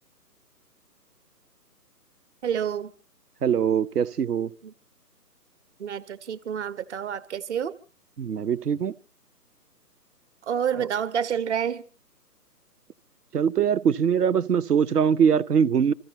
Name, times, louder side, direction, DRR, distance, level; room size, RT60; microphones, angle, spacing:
voice 1, 2.4-2.9 4.6-4.7 5.8-7.7 10.5-11.8, right 8 dB, 45° right, 1.1 m, -28 dB
voice 2, 3.4-4.5 8.2-8.9 13.3-15.9, right 7 dB, 70° right, 1.0 m, -22 dB
27.5 x 14.5 x 2.9 m
hypercardioid pair, 150°, 48 cm